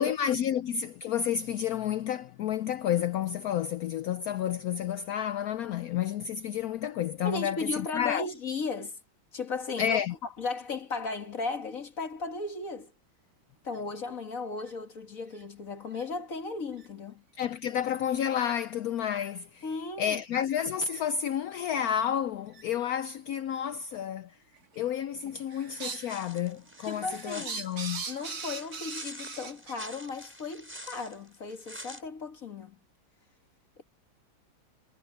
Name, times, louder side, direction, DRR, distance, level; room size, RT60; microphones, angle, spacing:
voice 1, 0.0-8.3 9.8-10.1 17.4-19.7 20.0-24.4 24.8-28.0, left 9 dB, 85° left, 0.8 m, -30 dB
voice 2, 7.2-9.0 9.3-10.0 10.4-12.9 13.6-17.2 19.6-20.2 26.8-27.6 28.1-32.8, left 4 dB, 45° left, 2.0 m, -36 dB
sound 1, 13.7-13.8 14.6-14.7 15.3-15.4 15.9-16.0 16.7-16.9 17.8-17.9 18.5-18.7 19.2-19.3 20.0-20.2 20.9-21.0 21.7-21.8 22.5-22.6 23.5-23.6 24.5-24.9 25.2-26.1 26.5-29.7, right 5 dB, 50° right, 2.2 m, -41 dB
sound 2, 26.1-32.0, equal, 5° right, 6.6 m, -46 dB
omnidirectional pair, 2.1 m